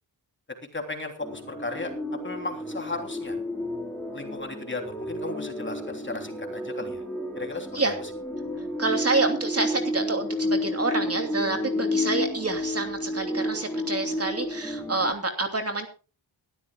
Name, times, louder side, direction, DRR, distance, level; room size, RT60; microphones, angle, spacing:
voice 1, 0.7-1.9 2.2-3.4 4.1-7.0 7.3-7.9, left 2 dB, 25° left, 4 dB, 3.3 m, -35 dB
sound 1, 1.2-15.1, left 1 dB, 5° left, 4.2 m, -31 dB
voice 2, 8.8-15.9, right 3 dB, 30° right, 5 dB, 2.8 m, -28 dB
21.5 x 14.0 x 2.4 m, 0.34 s
wide cardioid pair, 140°, 46 cm